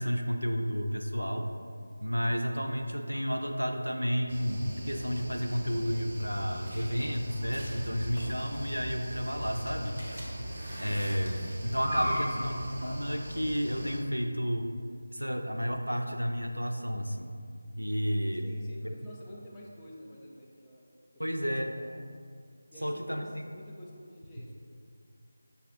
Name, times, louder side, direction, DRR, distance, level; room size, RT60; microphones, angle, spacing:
voice 1, 0.0-1.5 2.0-10.0 10.8-14.7 15.1-17.3 17.8-18.5 21.2-21.7 22.8-23.4, equal, 90° right, 5 dB, 0.4 m, -31 dB
sound 1, 4.3-14.0, equal, 35° right, 0.8 m, -38 dB
sound 2, 7.4-11.8, equal, 70° left, 1.3 m, -51 dB
voice 2, 12.0-12.5 18.4-20.9 21.1-21.5 21.7-22.0 22.7-24.5, equal, 10° left, -6 dB, 0.4 m, -50 dB
6.6 x 2.4 x 2.5 m, 2.2 s
figure-of-eight pair, 165°, 0 cm